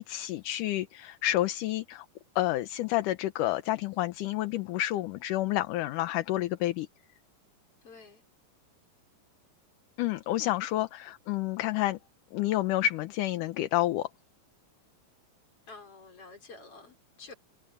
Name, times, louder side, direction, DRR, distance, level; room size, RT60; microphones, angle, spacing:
voice 1, 0.0-2.1 2.4-6.9 10.0-12.0 12.3-14.1, left 14 dB, 70° left, 2.2 m, -29 dB
voice 2, 7.8-8.2 15.7-17.3, left 4 dB, 40° left, 5.1 m, -49 dB
omnidirectional pair, 4.2 m